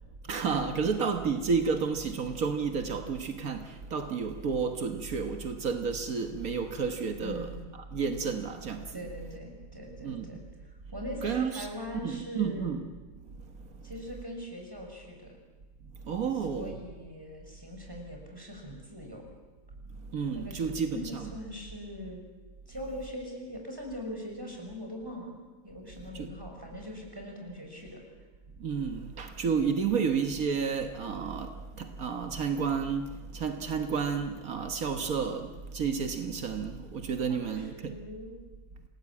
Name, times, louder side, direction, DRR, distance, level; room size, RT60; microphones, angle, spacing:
voice 1, 0.3-3.7 3.9-7.6 7.9-9.1 10.0-10.3 11.2-11.7 12.0-12.9 16.1-16.8 20.1-21.3 26.2-26.3 28.6-38.0, right 5 dB, 80° right, 1.8 m, -31 dB
voice 2, 7.2-7.6 8.9-10.4 10.9-12.7 13.8-15.3 16.5-19.2 20.3-22.2 22.7-25.4 25.6-28.0 37.3-38.3, equal, 15° right, 6.0 m, -41 dB
27.5 x 19.0 x 8.6 m
omnidirectional pair, 1.5 m